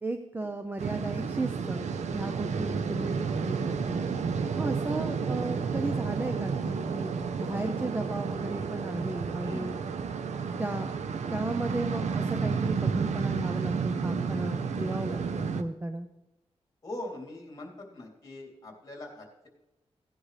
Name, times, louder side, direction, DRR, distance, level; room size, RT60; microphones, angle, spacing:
voice 1, 0.0-4.0 4.5-9.8 10.6-10.9 11.3-16.1, right 2 dB, 15° right, 7 dB, 0.6 m, -35 dB
sound 1, 0.8-15.6, right 5 dB, 85° right, 0.8 m, -31 dB
voice 2, 9.4-9.8 16.8-19.5, left 1 dB, 30° left, 0 dB, 3.0 m, -42 dB
17.0 x 10.0 x 3.3 m, 0.96 s
wide cardioid pair, 155°, 12 cm